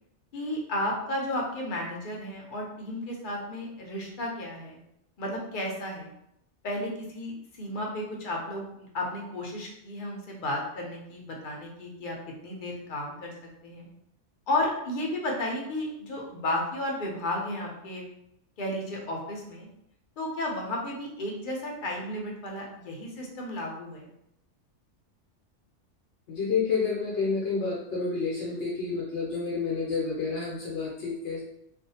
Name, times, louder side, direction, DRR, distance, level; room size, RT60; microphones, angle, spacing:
voice 1, 0.3-4.8 5.2-6.1 6.6-12.2 12.4-13.3 13.6-13.9 14.5-18.1 18.6-19.7 20.2-24.1, left 1 dB, 55° left, -1 dB, 0.7 m, -33 dB
voice 2, 26.3-31.4, left 4 dB, 75° left, -4 dB, 0.9 m, -29 dB
2.5 x 2.3 x 2.7 m, 0.78 s
omnidirectional pair, 1.2 m